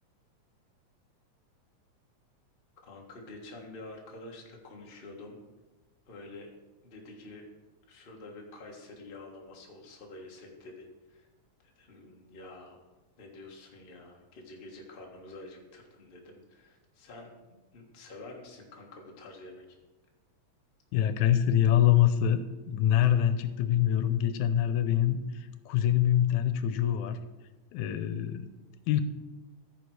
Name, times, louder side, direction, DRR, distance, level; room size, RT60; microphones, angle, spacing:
voice 1, 2.8-5.4 6.1-6.5 6.8-7.4 7.9-11.3 11.6-12.8 13.2-17.3 17.7-19.6, left 2 dB, 35° left, 0 dB, 0.9 m, -48 dB
voice 2, 20.9-25.2 25.7-27.2 27.7-28.5 28.9-29.0, left 11 dB, 85° left, 11 dB, 2.1 m, -25 dB
14.0 x 5.1 x 4.7 m, 1.2 s
omnidirectional pair, 3.4 m